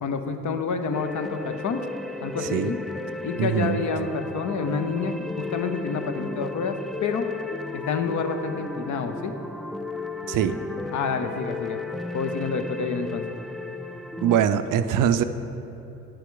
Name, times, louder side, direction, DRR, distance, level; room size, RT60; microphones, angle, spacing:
voice 1, 0.0-1.8 2.2-2.8 3.2-7.3 7.7-9.3 10.9-11.8 12.1-13.2, left 5 dB, 55° left, 7 dB, 0.8 m, -28 dB
sound 1, 0.9-14.4, left 3 dB, ahead, 0.3 m, -35 dB
voice 2, 2.4-2.7 3.4-3.8 10.3-10.6 14.2-15.2, right 9 dB, 65° right, 11 dB, 0.5 m, -22 dB
8.9 x 6.8 x 3.8 m, 2.9 s
hypercardioid pair, 45°, 35 cm